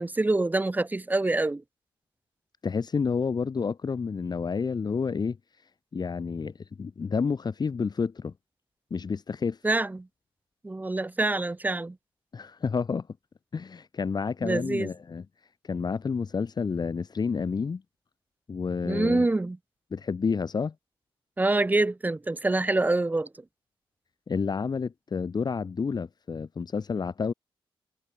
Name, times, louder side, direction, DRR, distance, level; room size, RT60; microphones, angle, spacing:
voice 1, 0.0-1.6 9.6-10.1 10.6-12.0 14.4-14.9 18.8-19.6 21.4-23.3, right 2 dB, 15° right, 0.7 m, -26 dB
voice 2, 2.6-5.4 5.9-8.3 8.9-9.6 12.3-13.1 13.5-15.2 15.6-17.8 18.5-19.3 19.9-20.7 24.3-27.3, left 5 dB, 45° left, 1.9 m, -29 dB
cardioid pair, 75°, 10 cm